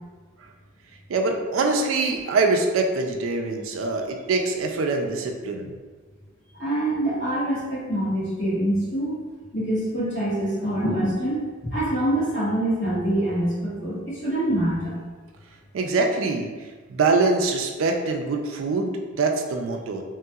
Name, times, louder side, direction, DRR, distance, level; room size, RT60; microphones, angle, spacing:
voice 1, 1.1-5.7 15.7-16.5 16.9-20.0, right 3 dB, 90° right, 3 dB, 0.4 m, -24 dB
voice 2, 6.6-9.2 9.5-15.0, right 1 dB, 60° left, -10 dB, 1.4 m, -25 dB
3.0 x 2.8 x 2.3 m, 1.4 s
head